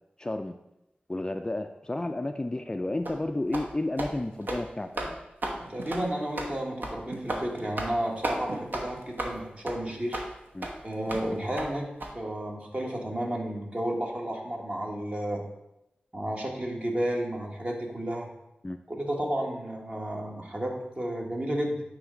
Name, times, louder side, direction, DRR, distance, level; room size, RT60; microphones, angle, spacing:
voice 1, 0.2-0.6 1.1-5.2 10.5-10.7 18.6-18.8, left 2 dB, 20° left, 7 dB, 0.3 m, -32 dB
sound 1, 3.1-3.2 3.5-3.7 4.0-4.1 4.4-4.6 5.0-5.1 5.4-5.6 5.9-6.0 6.4-6.5 6.8-7.0 7.3-7.4 7.8-8.0 8.2-8.4 8.7-8.8 9.2-9.3 9.7-9.8 10.1-10.3 10.6-10.7 11.1-11.2 11.6-11.7 12.0-12.1, right 1 dB, 60° right, 1.0 m, -33 dB
voice 2, 5.6-10.2 10.8-11.9 12.1-15.4 16.1-18.3 18.9-21.8, right 1 dB, 35° right, 0 dB, 1.4 m, -32 dB
sound 2, 5.7-6.4 7.1-9.3 9.9-10.2 10.7-11.5, right 2 dB, 80° right, 0.7 m, -45 dB
9.2 x 3.2 x 3.8 m, 0.89 s
cardioid pair, 50°, 4 cm